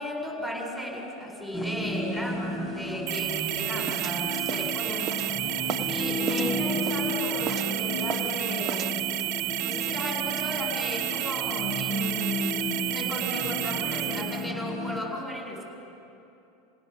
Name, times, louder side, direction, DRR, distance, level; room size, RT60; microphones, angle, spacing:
voice 1, 0.0-5.6 5.9-8.9 9.6-12.6 12.9-15.6, left 1 dB, 5° left, -1 dB, 7.7 m, -35 dB
sound 1, 1.5-15.0, left 1 dB, 25° left, 3.0 m, -33 dB
sound 2, 3.1-14.5, right 17 dB, 60° right, 0.6 m, -31 dB
sound 3, 3.9-6.0 6.3-7.1 7.4-8.4 8.7-9.0, right 7 dB, 35° right, 1.3 m, -36 dB
29.5 x 17.5 x 7.1 m, 2.8 s
hypercardioid pair, 95°, 0 cm